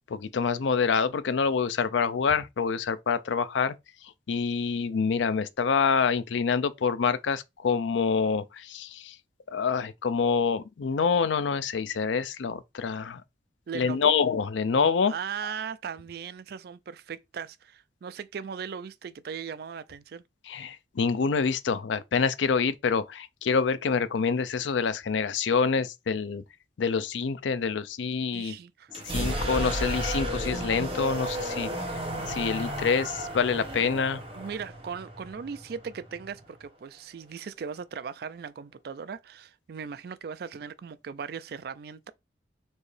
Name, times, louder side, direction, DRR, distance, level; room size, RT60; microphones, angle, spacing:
voice 1, 0.1-3.7 4.3-9.1 9.5-13.2 13.7-15.1 20.5-26.4 26.8-28.6 29.0-31.7 32.3-34.2, left 5 dB, 85° left, 0.4 m, -26 dB
voice 2, 13.7-14.1 15.1-20.2 28.3-28.9 34.3-42.1, right 6 dB, 55° right, 0.3 m, -38 dB
sound 1, 28.9-36.6, equal, 30° right, 1.2 m, -33 dB
4.4 x 3.0 x 3.2 m
head